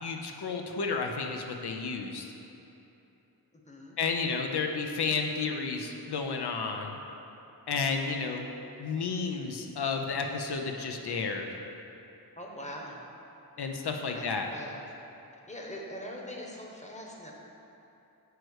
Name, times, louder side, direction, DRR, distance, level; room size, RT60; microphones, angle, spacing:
voice 1, 0.0-2.3 4.0-7.0 7.7-8.5 8.8-11.6 13.6-14.5, left 4 dB, 85° left, 3 dB, 0.8 m, -32 dB
voice 2, 3.7-4.0 12.4-13.0 13.9-14.2 14.5-14.8 15.5-17.3, equal, 20° left, -1 dB, 1.0 m, -42 dB
9.5 x 3.2 x 6.3 m, 2.9 s
wide cardioid pair, 110°, 38 cm